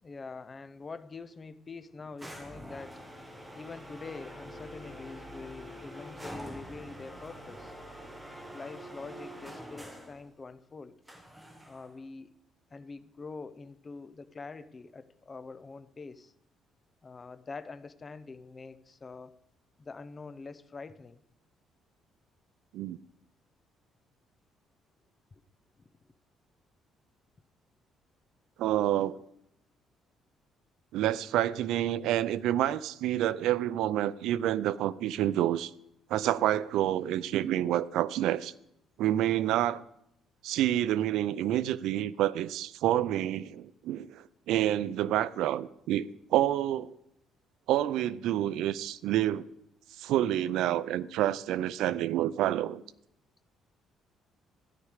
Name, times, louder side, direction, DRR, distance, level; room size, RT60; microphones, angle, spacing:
voice 1, 0.0-3.0 3.5-7.7 8.5-10.9 11.6-12.3 12.7-16.3 17.0-19.4 19.8-21.2, left 4 dB, 20° left, 0.5 m, -45 dB
sound 1, 2.2-10.2 11.1-12.0, equal, 5° right, 1.2 m, -45 dB
voice 2, 28.6-29.2 30.9-35.7 36.1-38.5 39.0-39.8 40.4-46.1 46.3-46.9 47.7-49.5 50.0-52.8, right 12 dB, 75° right, 0.5 m, -28 dB
13.5 x 11.0 x 4.9 m
cardioid pair, 175°, 0 cm